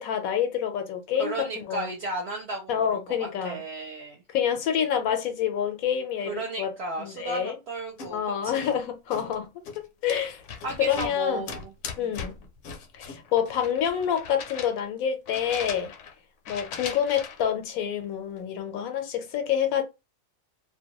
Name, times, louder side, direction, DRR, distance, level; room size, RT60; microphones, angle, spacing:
voice 1, 0.0-1.9 2.7-3.6 4.3-6.7 7.0-7.5 8.1-9.5 9.8-10.4 10.8-11.5 12.0-12.3 12.9-15.9 16.5-19.8, left 9 dB, 85° left, 1.1 m, -27 dB
voice 2, 1.2-4.2 6.2-8.7 10.6-12.3, right 3 dB, 60° right, 0.8 m, -35 dB
sound 1, 8.0-8.1 8.5-8.8 9.1-11.2 11.4-14.9 15.3-16.1 16.5-17.5, left 6 dB, 70° left, 0.9 m, -39 dB
2.6 x 2.1 x 2.9 m
omnidirectional pair, 1.4 m